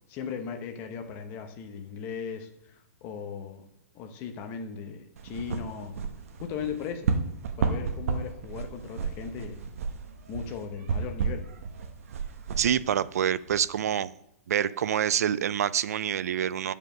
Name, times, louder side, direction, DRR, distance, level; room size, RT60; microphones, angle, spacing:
voice 1, 0.1-3.6 3.9-6.0 6.4-7.1 7.6-9.6 10.3-11.4, left 6 dB, 25° left, 6 dB, 0.9 m, -37 dB
sound 1, 5.2-13.6, right 5 dB, 65° right, 1.1 m, -32 dB
voice 2, 12.6-14.1 14.5-16.7, right 9 dB, 80° right, 18 dB, 0.4 m, -26 dB
9.3 x 5.2 x 6.5 m, 0.77 s
hypercardioid pair, 170°, 8 cm